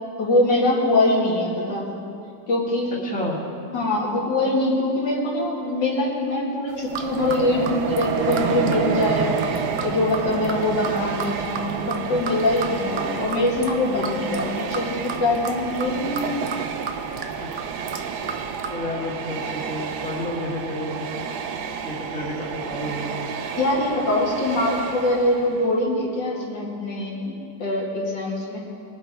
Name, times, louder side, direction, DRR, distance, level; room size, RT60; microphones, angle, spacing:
voice 1, 0.2-1.9 2.5-3.0 3.7-16.3 23.6-28.6, left 2 dB, 75° left, -4 dB, 2.8 m, -23 dB
voice 2, 3.0-3.4 17.4-17.5 18.7-21.2 21.8-23.2, left 1 dB, 5° left, -4 dB, 1.7 m, -30 dB
sound 1, 6.7-18.7, right 5 dB, 50° right, 0.7 m, -35 dB
Train, 6.9-25.8, right 6 dB, 70° right, 1.2 m, -30 dB
21.5 x 7.6 x 4.5 m, 2.5 s
omnidirectional pair, 2.0 m